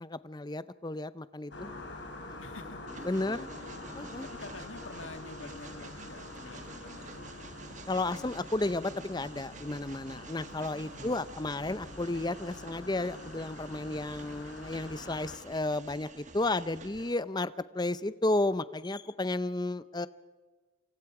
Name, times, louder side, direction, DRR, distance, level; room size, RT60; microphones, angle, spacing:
voice 1, 0.0-1.7 3.0-3.5 4.0-4.3 7.9-20.1, left 2 dB, 20° left, 15 dB, 0.6 m, -33 dB
sound 1, 1.5-15.4, left 2 dB, 60° left, 4.1 m, -46 dB
voice 2, 2.4-3.8 4.2-7.3 10.9-11.4, left 3 dB, 80° left, 8 dB, 1.9 m, -48 dB
Train, 2.9-17.1, right 3 dB, 35° right, 1.4 m, -50 dB
28.5 x 26.0 x 4.9 m, 1.4 s
head